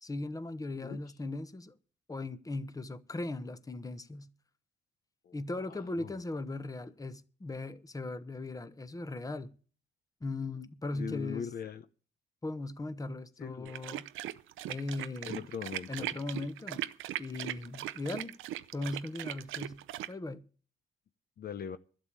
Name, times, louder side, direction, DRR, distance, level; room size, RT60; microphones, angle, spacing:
voice 1, 0.0-1.7 2.1-4.3 5.3-9.5 10.2-11.5 12.4-14.1 14.7-15.5 15.9-16.9 17.2-18.3 18.7-19.8 20.1-20.4, left 2 dB, 15° left, 1.1 m, -38 dB
voice 2, 5.2-6.1 10.9-11.8 13.4-13.7 15.2-16.1 21.4-21.8, left 8 dB, 50° left, 0.7 m, -41 dB
sound 1, 13.7-20.1, right 14 dB, 85° right, 0.6 m, -39 dB
12.0 x 7.4 x 8.5 m
cardioid pair, 90°, 20 cm